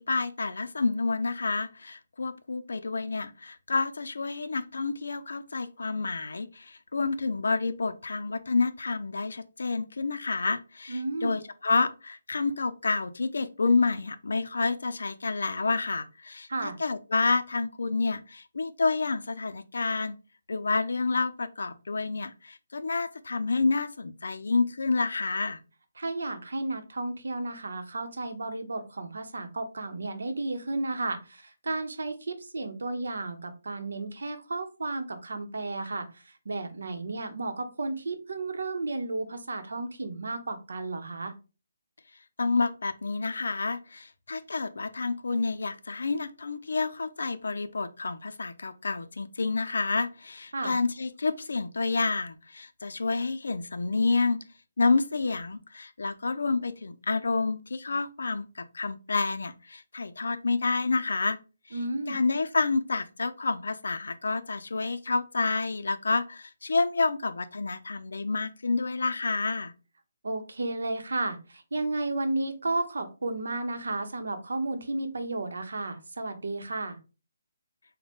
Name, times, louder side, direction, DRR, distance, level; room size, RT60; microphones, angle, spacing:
voice 1, 0.1-20.2 20.5-25.6 42.4-54.4 54.8-61.4 61.7-61.8 62.1-69.7, left 3 dB, 75° left, 11 dB, 0.4 m, -29 dB
voice 2, 10.9-11.3 16.5-16.8 26.0-41.3 50.5-50.7 61.7-62.2 70.2-77.0, right 2 dB, 80° right, 6 dB, 0.8 m, -33 dB
3.9 x 2.1 x 3.5 m, 0.31 s
hypercardioid pair, 180°, 0 cm